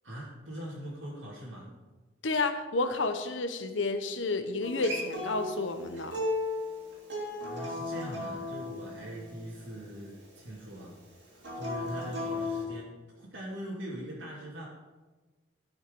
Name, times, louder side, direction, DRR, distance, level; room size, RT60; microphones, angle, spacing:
voice 1, 0.0-1.7 7.3-11.0 11.5-14.7, equal, 85° right, -8 dB, 2.6 m, -42 dB
voice 2, 2.2-6.2, left 3 dB, 85° left, 8 dB, 1.0 m, -31 dB
Acoustic guitar, 4.6-9.8 11.4-12.6, left 2 dB, 65° right, 3.8 m, -35 dB
12.5 x 6.4 x 5.3 m, 1.2 s
head